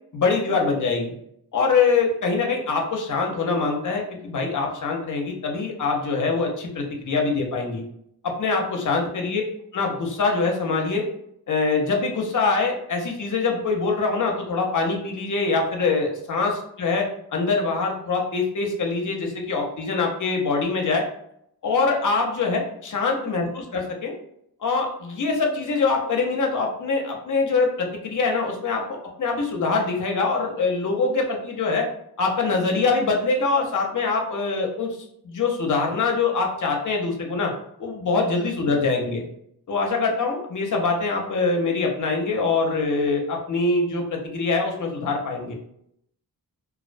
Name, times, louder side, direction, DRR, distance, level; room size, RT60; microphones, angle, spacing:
voice 1, 0.1-1.1 1.5-7.8 8.2-9.4 9.7-11.0 11.5-21.0 21.6-24.1 24.6-31.9 32.2-35.0 35.2-37.5 37.8-39.2 39.7-45.5, left 4 dB, 50° left, 1 dB, 0.6 m, -24 dB
2.4 x 2.1 x 2.5 m, 0.73 s
wide cardioid pair, 85°, 39 cm